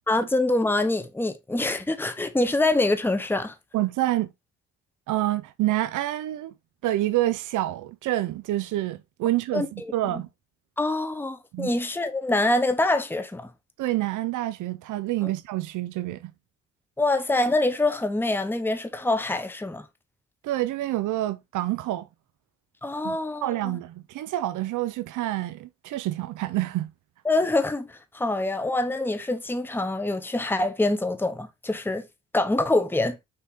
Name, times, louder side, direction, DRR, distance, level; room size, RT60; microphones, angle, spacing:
voice 1, 0.1-3.5 9.5-9.9 10.8-13.5 15.2-15.3 17.0-19.8 22.8-23.8 27.2-32.0 32.3-33.2, left 2 dB, 5° left, 1.0 m, -25 dB
voice 2, 3.7-4.3 5.1-6.5 6.8-10.3 11.5-11.7 13.8-16.3 20.4-22.1 23.0-26.9, right 15 dB, 85° right, 0.7 m, -27 dB
6.0 x 4.5 x 3.6 m
cardioid pair, 90°, 30 cm